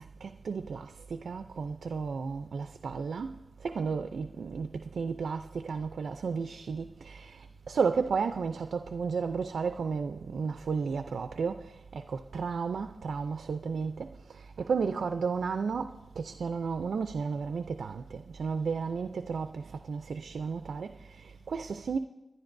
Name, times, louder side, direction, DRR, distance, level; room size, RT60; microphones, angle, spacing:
voice 1, 0.0-22.0, right 5 dB, 90° right, 0.4 m, -33 dB
28.0 x 11.0 x 2.6 m
cardioid pair, 65°, 0 cm